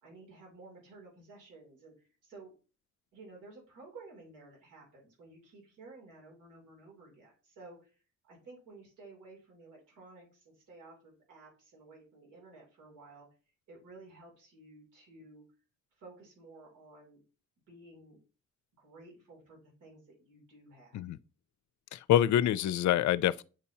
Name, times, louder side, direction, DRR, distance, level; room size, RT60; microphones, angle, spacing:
voice 1, 0.0-2.5 3.1-7.9 8.2-13.3 13.7-15.4 16.0-17.2 17.7-18.2 18.8-21.0, right 3 dB, 90° right, 2.9 m, -54 dB
voice 2, 21.9-23.4, left 11 dB, 70° left, 0.5 m, -26 dB
8.7 x 4.2 x 2.8 m
cardioid pair, 85°, 30 cm